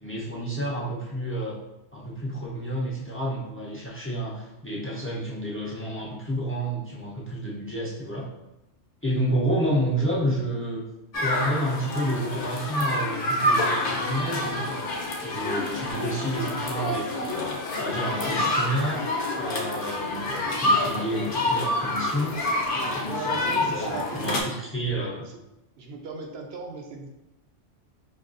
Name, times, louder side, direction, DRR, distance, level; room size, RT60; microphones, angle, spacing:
voice 1, 0.0-1.6 1.9-8.3 9.0-10.8 11.2-14.8 15.2-17.5 17.8-19.1 19.3-24.4 24.7-25.2, right 1 dB, 20° left, -4 dB, 0.3 m, -30 dB
sound 1, 11.1-24.4, left 1 dB, 55° left, 0.7 m, -27 dB
voice 2, 23.0-24.5 25.0-25.4 25.8-27.1, right 4 dB, 65° right, 2 dB, 0.8 m, -37 dB
5.2 x 2.3 x 2.5 m, 0.93 s
omnidirectional pair, 1.2 m